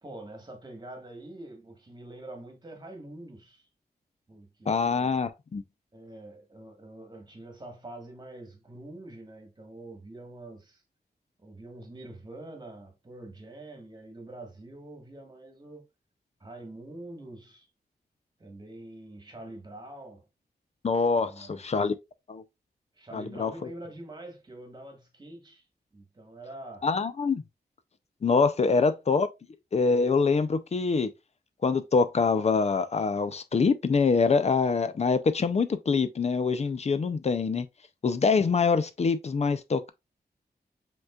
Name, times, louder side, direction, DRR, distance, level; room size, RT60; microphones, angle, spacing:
voice 1, 0.0-3.7 4.3-5.2 5.9-10.8 11.4-15.9 16.4-17.7 18.4-20.2 21.2-21.6 22.9-25.6 25.9-26.9, right 1 dB, 25° right, 1.5 m, -45 dB
voice 2, 4.7-5.6 20.8-22.0 22.3-22.4 23.1-23.5 26.8-27.4 28.2-29.3 29.7-31.1 31.6-37.7 38.0-39.9, left 4 dB, 40° left, 0.5 m, -25 dB
5.2 x 3.7 x 2.3 m
wide cardioid pair, 135°, 16 cm